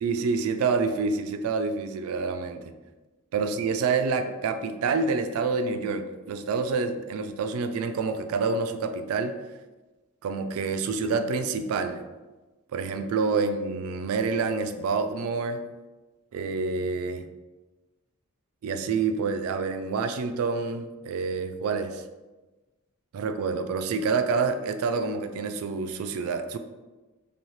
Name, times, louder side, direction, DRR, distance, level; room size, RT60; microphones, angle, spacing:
voice 1, 0.0-2.6 3.3-9.4 10.2-12.0 12.7-15.6 16.3-17.3 18.6-22.0 23.1-26.6, right 4 dB, 75° right, 9 dB, 0.3 m, -27 dB
2.9 x 2.7 x 3.1 m, 1.2 s
head